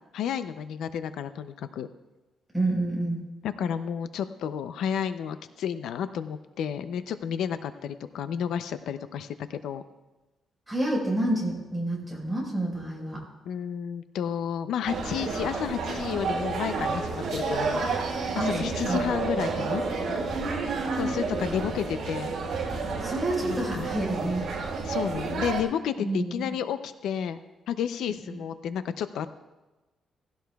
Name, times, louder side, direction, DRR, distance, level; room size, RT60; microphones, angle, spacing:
voice 1, 0.1-1.9 3.4-9.8 13.5-17.8 18.3-19.8 21.0-22.3 23.4-23.9 24.8-27.4 27.7-29.3, left 8 dB, 85° left, 10 dB, 0.5 m, -31 dB
voice 2, 2.5-3.2 10.7-13.2 18.3-19.0 20.3-21.2 23.0-24.5 26.0-26.5, right 1 dB, ahead, -4 dB, 4.5 m, -29 dB
sound 1, 14.9-25.6, right 4 dB, 55° right, 4.3 m, -30 dB
18.0 x 16.0 x 2.3 m, 1.1 s
cardioid pair, 160°, 0 cm